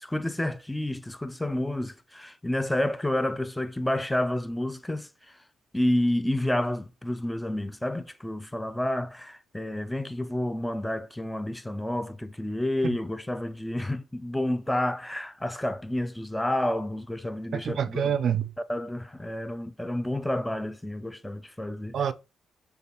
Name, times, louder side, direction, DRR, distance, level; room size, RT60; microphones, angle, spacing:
voice 1, 0.0-5.4 5.7-18.1 18.7-22.0, left 1 dB, 10° left, 0.4 m, -30 dB
voice 2, 17.5-18.5 21.9-22.1, right 8 dB, 60° right, 0.4 m, -27 dB
6.4 x 2.4 x 2.9 m
hypercardioid pair, 50°, 0 cm